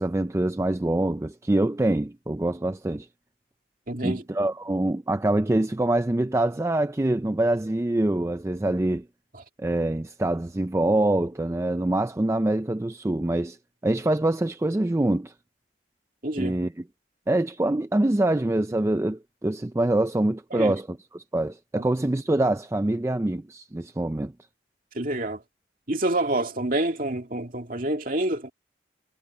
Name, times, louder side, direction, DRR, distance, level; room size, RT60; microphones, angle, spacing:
voice 1, 0.0-3.1 4.0-9.0 9.6-13.6 13.8-15.3 16.4-16.7 17.3-24.3, right 1 dB, 15° right, 0.4 m, -25 dB
voice 2, 3.9-4.2 9.3-9.4 16.2-16.6 20.5-20.7 21.8-21.9 24.9-25.4 25.9-28.5, right 1 dB, 45° right, 2.3 m, -27 dB
head